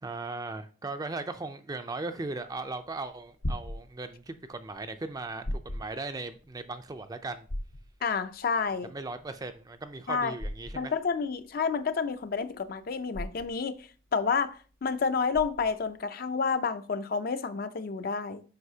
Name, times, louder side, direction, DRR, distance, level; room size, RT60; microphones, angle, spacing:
voice 1, 0.0-7.5 8.8-10.9, right 3 dB, 20° right, 0.4 m, -38 dB
sound 1, 2.9-15.9, left 1 dB, 80° left, 0.9 m, -40 dB
voice 2, 8.0-8.9 10.1-10.3 10.8-18.4, left 5 dB, 45° left, 0.4 m, -30 dB
7.9 x 5.6 x 2.7 m
head